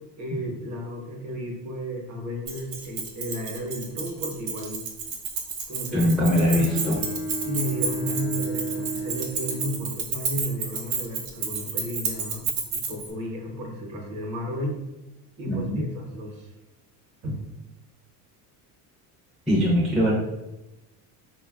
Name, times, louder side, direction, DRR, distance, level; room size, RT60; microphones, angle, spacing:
voice 1, 0.2-4.9 5.7-6.1 6.5-6.7 7.4-14.8 15.4-16.5 17.2-17.4, equal, 45° right, 1 dB, 0.8 m, -33 dB
Keys jangling, 2.5-13.1, right 5 dB, 85° right, 0.8 m, -31 dB
voice 2, 5.9-7.0 15.5-15.8 19.5-20.1, equal, ahead, -7 dB, 0.4 m, -22 dB
Bowed string instrument, 6.2-10.4, right 1 dB, 55° left, 0.6 m, -34 dB
4.0 x 2.2 x 2.2 m, 0.96 s
cardioid pair, 140°, 42 cm